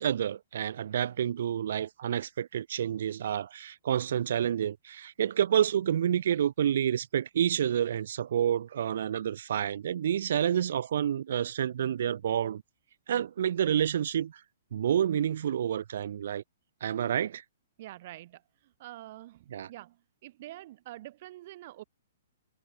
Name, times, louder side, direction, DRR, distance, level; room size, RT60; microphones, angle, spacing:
voice 1, 0.0-12.6 13.1-14.3 14.7-16.4 16.8-17.4 19.5-19.7, right 9 dB, 65° right, 1.1 m, -29 dB
voice 2, 17.8-18.4 18.8-20.0 20.2-21.8, right 15 dB, 45° right, 1.1 m, -46 dB
hypercardioid pair, 150°, 0 cm